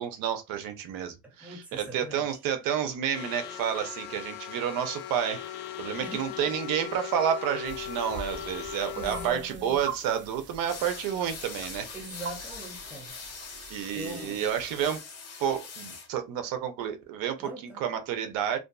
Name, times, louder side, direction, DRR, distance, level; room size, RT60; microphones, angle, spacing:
voice 1, 0.0-11.9 13.7-15.0 15.4-17.5 17.8-18.6, right 9 dB, 80° right, 0.7 m, -30 dB
voice 2, 1.2-2.3 6.0-6.5 9.0-9.8 11.9-13.2 13.9-14.5 17.4-17.8, right 1 dB, 5° right, 0.8 m, -42 dB
sound 1, 3.1-9.3, left 11 dB, 80° left, 0.5 m, -39 dB
sound 2, 7.6-15.0, right 5 dB, 35° right, 0.4 m, -44 dB
sound 3, 10.6-16.1, left 5 dB, 45° left, 1.0 m, -43 dB
2.5 x 2.3 x 2.3 m
cardioid pair, 120°, 33 cm